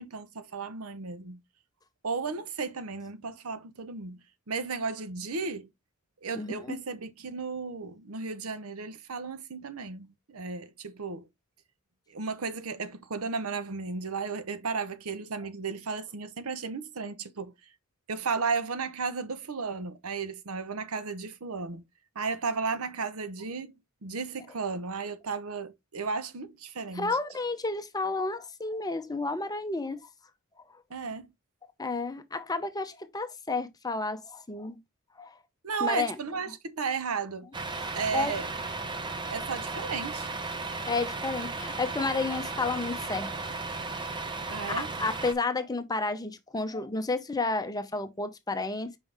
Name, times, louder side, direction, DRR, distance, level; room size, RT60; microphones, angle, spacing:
voice 1, 0.0-1.4 2.0-4.2 4.5-5.7 6.2-11.2 12.1-17.5 18.1-21.8 22.1-23.7 24.0-27.2 30.9-31.3 35.6-37.5 37.9-38.5 39.3-40.3 44.5-44.9, right 4 dB, 75° right, 0.8 m, -34 dB
voice 2, 6.3-6.8 26.9-30.0 31.8-34.8 35.2-35.3 35.8-36.2 37.7-38.4 39.4-39.5 40.9-43.6 44.5-49.0, left 3 dB, 15° left, 0.8 m, -31 dB
Truck, 37.5-45.3, right 3 dB, 20° right, 0.8 m, -35 dB
5.4 x 5.4 x 3.4 m
head